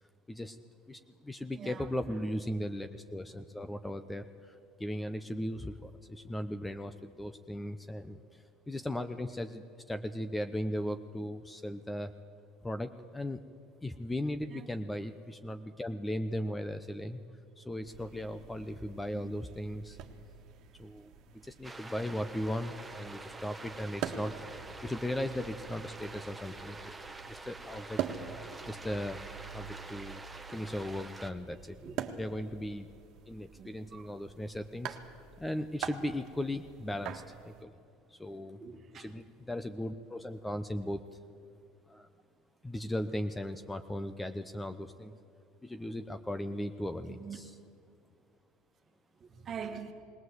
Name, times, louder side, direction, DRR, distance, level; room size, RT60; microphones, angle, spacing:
voice 1, 0.9-12.1 12.6-13.4 13.8-17.2 17.6-20.0 20.8-21.1 21.4-24.4 24.8-26.9 27.3-28.0 28.6-29.2 29.5-30.2 30.5-31.8 32.2-32.9 33.3-35.0 35.4-37.8 38.1-38.6 38.9-41.0 41.9-42.1 42.6-45.2 45.6-47.5, left 1 dB, 10° left, 10 dB, 0.7 m, -37 dB
sound 1, 17.9-37.6, right 9 dB, 55° right, 1.6 m, -45 dB
sound 2, 21.6-31.3, right 2 dB, 10° right, 1.3 m, -47 dB
voice 2, 33.6-34.1 38.6-39.1 47.1-47.4 49.2-49.9, right 7 dB, 40° right, 6 dB, 1.7 m, -44 dB
20.0 x 17.5 x 8.0 m, 2.5 s
supercardioid pair, 115°, 0 cm